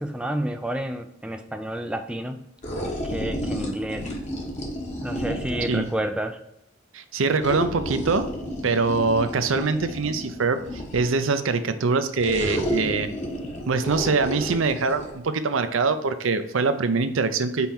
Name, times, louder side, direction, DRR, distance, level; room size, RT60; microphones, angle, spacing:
voice 1, 0.0-2.4 3.0-4.1 5.0-6.4, right 1 dB, 5° right, 6 dB, 0.3 m, -30 dB
sound 1, 2.6-6.0 7.4-11.2 12.2-15.1, equal, 35° left, 1.2 m, -31 dB
voice 2, 6.9-8.2 8.6-13.1 13.7-17.7, right 4 dB, 75° right, 9 dB, 0.6 m, -23 dB
5.4 x 4.4 x 4.4 m, 0.81 s
head